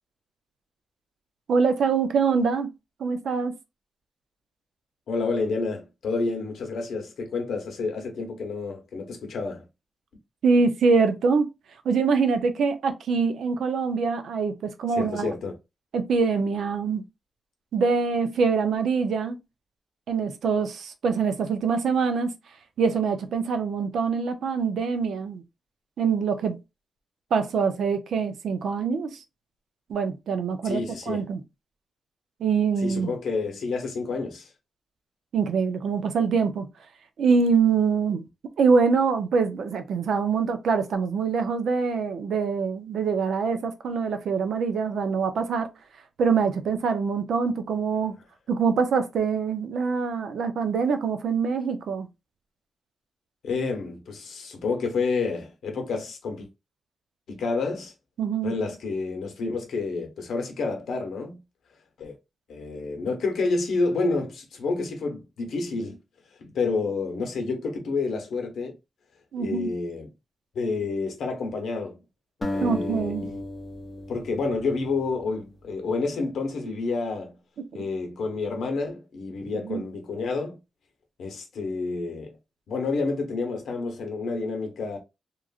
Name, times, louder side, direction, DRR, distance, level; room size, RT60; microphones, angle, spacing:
voice 1, 1.5-2.7 3.0-3.5 10.4-11.5 11.8-15.3 15.9-17.0 17.7-19.4 20.1-22.3 22.8-25.4 26.0-26.6 27.3-29.2 29.9-31.4 32.4-33.1 35.3-36.7 37.2-38.2 38.6-45.7 46.2-48.1 48.5-52.1 58.2-58.5 69.3-69.7 72.6-73.3 77.6-77.7 79.6-79.8, right 5 dB, 75° right, 0.5 m, -24 dB
voice 2, 5.1-9.7 15.0-15.5 30.6-31.2 32.8-34.5 53.4-56.5 57.3-57.9 58.4-61.4 62.0-62.2 62.5-66.0 66.4-68.7 69.4-70.1 70.5-72.0 72.5-73.4 74.1-77.4 77.7-80.6 81.2-82.4 82.7-85.0, left 3 dB, 75° left, 0.9 m, -29 dB
sound 1, 72.4-75.6, left 1 dB, 15° left, 0.5 m, -34 dB
3.0 x 2.4 x 2.4 m
wide cardioid pair, 175°, 0 cm